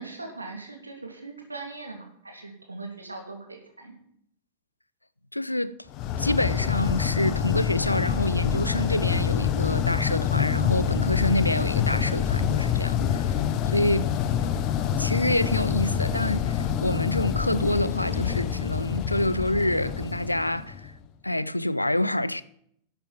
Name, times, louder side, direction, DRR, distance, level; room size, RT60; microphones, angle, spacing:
voice 1, 0.0-3.9, right 3 dB, 80° right, 2.9 m, -40 dB
voice 2, 5.3-5.8 6.2-13.3 13.7-14.1 15.0-20.9 21.2-22.4, left 1 dB, 85° left, 0.5 m, -27 dB
sound 1, 5.9-21.0, left 8 dB, 40° left, 1.0 m, -26 dB
12.0 x 7.8 x 7.3 m
figure-of-eight pair, 90°, 0 cm